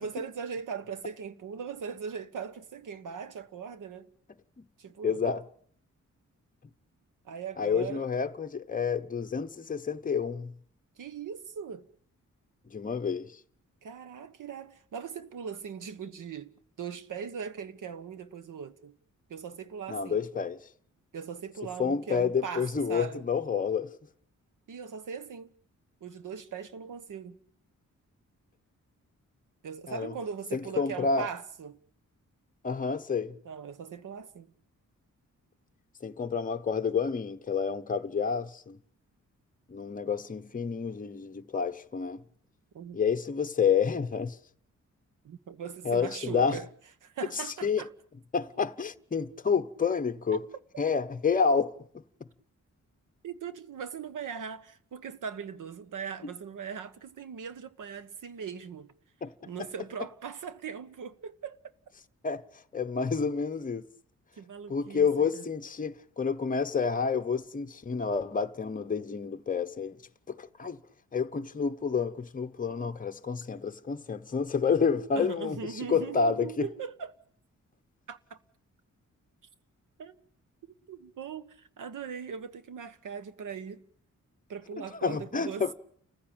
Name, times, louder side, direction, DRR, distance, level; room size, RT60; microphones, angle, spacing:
voice 1, 0.0-4.1 4.8-5.2 7.2-8.1 11.0-11.9 13.8-16.5 16.8-18.9 19.3-20.2 21.1-23.2 24.7-25.5 26.0-27.4 29.6-31.8 33.4-34.5 42.7-43.0 45.2-46.7 47.0-47.9 50.3-50.4 53.2-58.9 59.4-61.6 64.4-65.4 75.1-77.1 78.1-78.4 80.0-80.2 80.6-83.8 84.5-85.7, right 6 dB, 85° right, 1.4 m, -40 dB
voice 2, 5.0-5.4 7.6-10.5 12.7-13.3 19.9-20.6 21.8-23.9 29.9-30.1 30.5-31.3 32.6-33.4 36.0-38.8 39.7-42.2 42.9-44.4 45.8-46.6 47.6-47.8 48.3-50.4 50.8-52.0 59.2-59.3 62.2-62.4 62.7-63.8 64.7-70.0 70.3-70.8 71.1-76.7 84.8-85.7, left 6 dB, 25° left, 0.9 m, -29 dB
29.5 x 15.0 x 8.9 m
wide cardioid pair, 165°, 30 cm